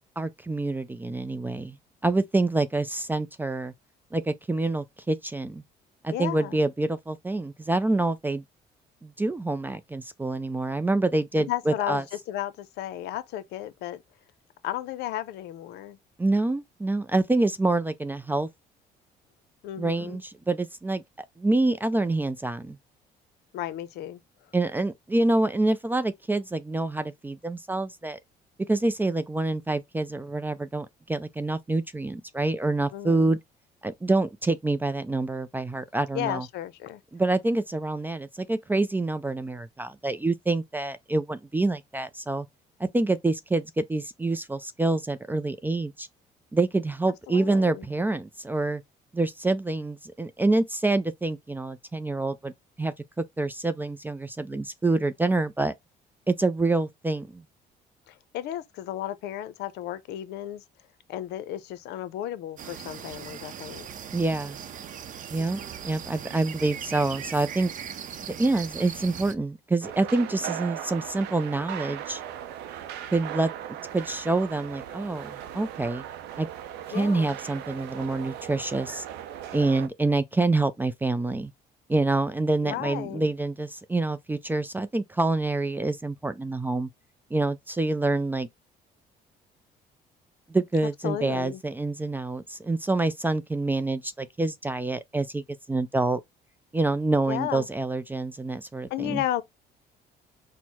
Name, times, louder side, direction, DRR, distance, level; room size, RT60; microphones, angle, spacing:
voice 1, 0.2-1.8 2.0-3.7 4.1-5.6 6.0-8.4 9.0-12.0 16.2-18.5 19.8-21.0 21.4-22.8 24.5-28.2 28.7-33.4 33.8-36.5 37.1-42.5 42.8-46.1 46.5-48.8 49.1-52.5 52.8-55.8 56.3-57.4 64.1-64.6 65.3-67.7 68.2-72.2 73.1-73.5 73.9-76.0 76.4-76.5 76.9-79.0 79.5-81.5 81.9-86.9 87.3-88.5 90.5-96.2 96.7-99.2, right 2 dB, 10° right, 0.4 m, -26 dB
voice 2, 6.1-6.6 11.4-14.0 14.6-16.0 19.6-20.2 23.5-24.2 32.9-33.3 36.1-37.0 47.3-47.9 58.1-60.6 61.1-63.9 76.9-77.3 82.6-83.2 91.0-91.6 97.3-97.7 98.9-99.4, left 12 dB, 80° left, 0.6 m, -33 dB
sound 1, 62.6-69.3, right 8 dB, 50° right, 0.6 m, -39 dB
sound 2, 69.8-79.9, right 10 dB, 90° right, 0.6 m, -38 dB
4.5 x 2.1 x 4.1 m
cardioid pair, 110°, 17 cm